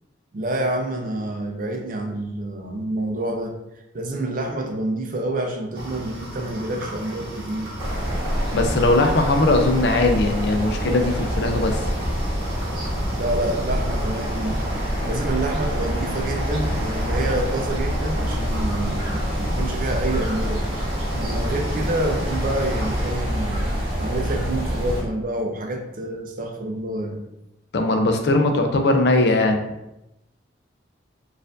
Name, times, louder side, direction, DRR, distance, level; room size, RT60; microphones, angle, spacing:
voice 1, 0.3-3.5 3.9-7.7 13.1-14.6 15.0-20.7 21.1-23.7 24.0-27.2, right 1 dB, 45° right, 3 dB, 0.5 m, -27 dB
coffee maker making coffee, 5.7-23.1, right 1 dB, 65° right, 0.8 m, -36 dB
sound 1, 7.8-25.0, equal, 25° right, 0.9 m, -26 dB
voice 2, 8.5-11.8 27.7-29.6, left 2 dB, 55° left, 5 dB, 0.4 m, -19 dB
4.3 x 2.5 x 2.5 m, 0.89 s
head